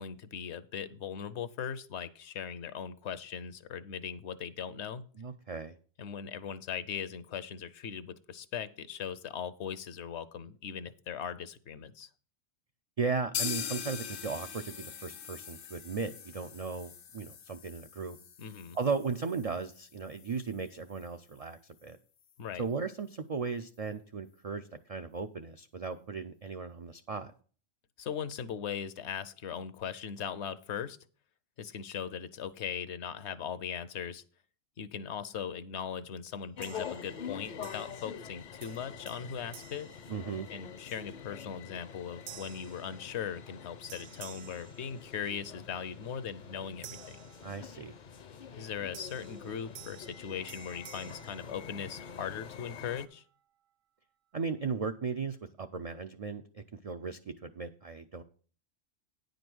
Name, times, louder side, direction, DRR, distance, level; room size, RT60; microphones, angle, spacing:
voice 1, 0.0-5.0 6.0-12.1 18.4-18.8 22.4-22.7 28.0-31.0 31.6-34.2 34.8-39.9 40.5-47.2 48.6-53.2, left 8 dB, 70° left, 14 dB, 0.9 m, -39 dB
voice 2, 5.2-5.8 13.0-18.2 18.7-22.0 22.6-27.3 40.1-40.5 47.4-48.0 54.3-58.2, right 5 dB, 65° right, 8 dB, 0.3 m, -36 dB
sound 1, 13.3-21.1 21.4-21.5 21.8-21.9 22.3-22.4, left 8 dB, 90° left, 1.2 m, -42 dB
sound 2, 36.6-53.1, left 7 dB, 50° left, 0.6 m, -46 dB
sound 3, 36.6-37.3 37.6-38.3 38.6-40.8 41.3-41.6 42.3-43.6 43.9-45.5 46.8-48.0 48.9-52.2, right 11 dB, 80° right, 0.9 m, -53 dB
9.8 x 5.2 x 6.1 m, 0.43 s
omnidirectional pair, 1.3 m